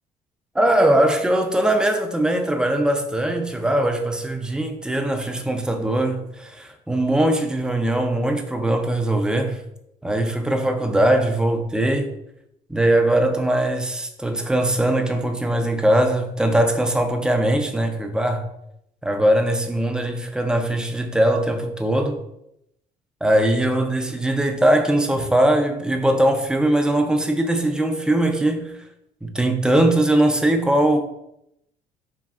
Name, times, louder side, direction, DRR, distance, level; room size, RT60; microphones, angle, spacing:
voice 1, 0.5-9.6 10.0-12.1 12.7-18.4 19.0-22.2 23.2-28.7 29.2-31.0, right 1 dB, 5° right, 5 dB, 0.3 m, -20 dB
3.2 x 2.6 x 2.3 m, 0.80 s
cardioid pair, 110°, 17 cm